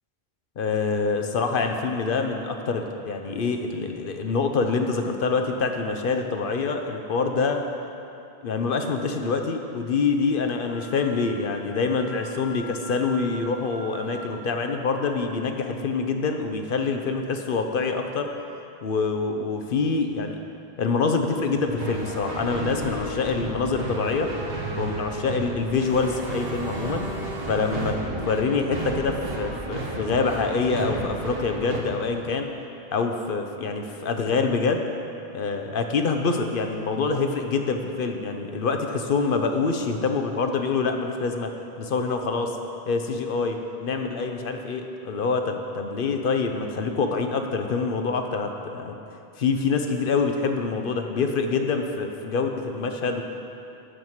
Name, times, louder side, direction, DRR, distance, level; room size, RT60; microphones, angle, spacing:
voice 1, 0.6-7.6 8.4-18.3 18.8-20.4 20.8-24.3 24.8-27.1 27.5-28.0 28.2-32.5 32.9-34.9 35.3-41.5 41.8-42.5 42.9-49.0 49.4-53.2, left 4 dB, 60° left, 5 dB, 0.9 m, -26 dB
Wind instrument woodwind instrument, 10.6-14.3, equal, 35° right, 1.4 m, -43 dB
sound 1, 21.5-31.8, right 2 dB, 70° right, 1.4 m, -32 dB
11.5 x 4.7 x 7.3 m, 2.8 s
omnidirectional pair, 1.0 m